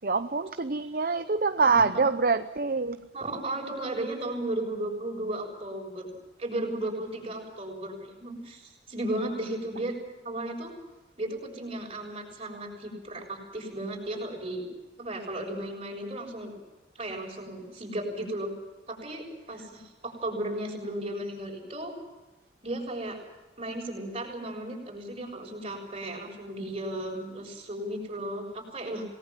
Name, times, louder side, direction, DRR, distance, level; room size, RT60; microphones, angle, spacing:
voice 1, 0.0-3.1, right 4 dB, 50° right, 9 dB, 0.8 m, -25 dB
voice 2, 3.1-6.1 6.4-10.0 10.2-10.7 11.2-14.6 15.0-16.5 16.9-18.5 18.9-21.9 22.6-23.2 23.6-29.0, right 1 dB, 30° right, 1 dB, 6.8 m, -35 dB
27.5 x 19.5 x 7.5 m, 1.1 s
head